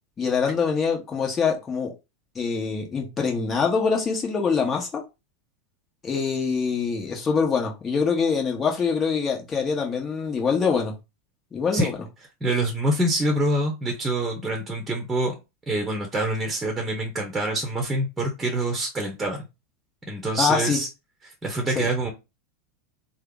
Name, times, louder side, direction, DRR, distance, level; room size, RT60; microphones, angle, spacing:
voice 1, 0.2-1.9 2.3-5.0 6.0-10.9 11.5-12.0 20.3-20.8 21.7-21.9, left 5 dB, 25° left, 1.2 m, -24 dB
voice 2, 12.4-15.3 15.7-19.5 20.1-20.9 21.2-22.1, right 1 dB, 10° right, 0.9 m, -26 dB
3.4 x 2.0 x 3.6 m
hypercardioid pair, 90°, 0 cm